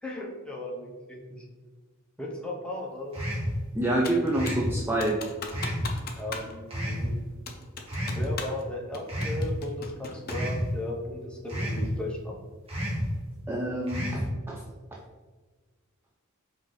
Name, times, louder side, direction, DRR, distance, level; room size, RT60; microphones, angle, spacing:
voice 1, 0.0-1.4 2.2-3.1 6.1-7.1 8.1-12.4, left 1 dB, 5° left, -3 dB, 0.8 m, -36 dB
sound 1, 3.1-3.6 4.3-4.7 5.5-5.9 6.7-7.1 7.9-8.2 9.1-9.5 10.3-10.7 11.5-11.9 12.7-13.1 13.9-14.3, equal, 30° right, 1.0 m, -30 dB
voice 2, 3.7-5.2 13.5-14.6, right 1 dB, 10° right, -3 dB, 0.4 m, -27 dB
Computer keyboard, 4.0-4.7 5.0-6.5 6.8-6.9 7.5-8.6 8.9-10.5, left 4 dB, 45° left, 0.5 m, -39 dB
4.6 x 2.6 x 3.8 m, 1.3 s
head